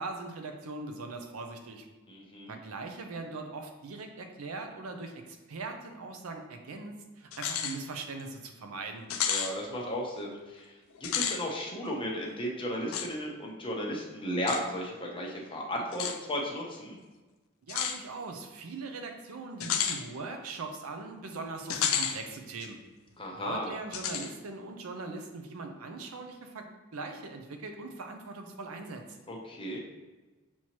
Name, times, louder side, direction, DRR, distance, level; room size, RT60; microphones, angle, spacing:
voice 1, 0.0-1.8 2.5-9.1 17.7-22.8 23.3-26.7 26.9-29.2, right 3 dB, 90° right, 5 dB, 0.6 m, -40 dB
voice 2, 2.1-2.5 9.3-10.7 11.0-17.0 23.2-23.7 29.3-29.8, equal, 25° left, -1 dB, 0.8 m, -35 dB
sound 1, 7.3-7.8 8.2-8.3 9.1-9.5 11.0-11.4 12.9-13.1 14.5-14.6 15.9-16.2 17.7-18.0 19.6-20.0 21.7-22.2 22.6-22.7 23.9-24.3, left 8 dB, 70° left, 0.4 m, -30 dB
6.2 x 2.9 x 2.9 m, 1.2 s
head